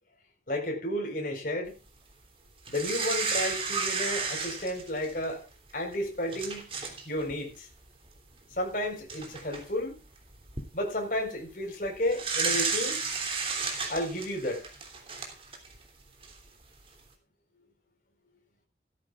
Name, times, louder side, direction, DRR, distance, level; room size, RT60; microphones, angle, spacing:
voice 1, 0.5-1.7 2.7-5.4 5.7-6.7 7.0-7.7 8.5-10.0 10.7-13.0 13.9-14.6, left 1 dB, 50° left, 4.5 m, -32 dB
sound 1, 2.7-5.3 5.9-6.0 6.3-7.0 7.3-7.5 8.6-8.7 9.1-9.6 10.3-10.6 12.1-15.8 16.2-16.3, right 5 dB, 30° right, 3.1 m, -32 dB
17.0 x 13.5 x 2.4 m
head